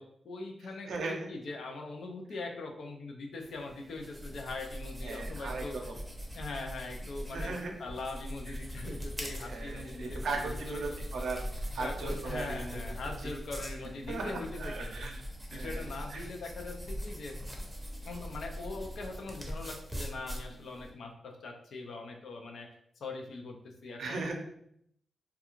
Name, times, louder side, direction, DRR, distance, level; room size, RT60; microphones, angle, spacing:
voice 1, 0.0-5.8 6.3-7.5 7.8-10.8 11.8-14.9 15.5-17.4 18.0-22.7 23.0-24.2, left 3 dB, 80° left, 3 dB, 0.4 m, -41 dB
voice 2, 0.8-1.3 5.0-6.0 7.3-7.7 8.5-8.6 9.4-11.4 11.7-12.8 13.2-13.3 14.1-15.2 15.5-16.2 24.0-24.3, right 3 dB, 85° right, 1 dB, 0.5 m, -38 dB
sound 1, 3.4-20.9, equal, 5° right, 0.6 m, -41 dB
2.4 x 2.3 x 2.9 m, 0.71 s
cardioid pair, 80°, 0 cm